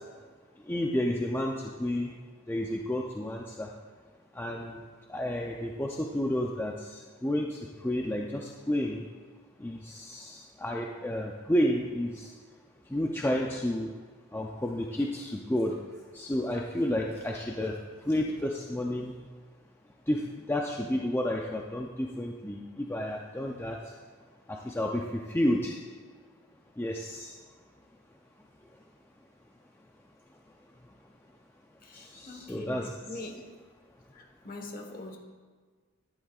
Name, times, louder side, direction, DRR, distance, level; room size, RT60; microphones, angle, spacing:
voice 1, 0.7-2.1 2.5-3.7 4.3-4.8 5.1-9.1 9.6-12.3 12.9-13.9 14.3-15.8 16.1-19.1 20.1-23.8 24.5-25.7 26.8-27.3 31.9-33.2, left 1 dB, 10° left, 0 dB, 0.4 m, -31 dB
voice 2, 31.8-33.3 34.1-35.2, left 2 dB, 40° left, 3 dB, 1.2 m, -43 dB
12.0 x 11.0 x 2.4 m, 1.5 s
head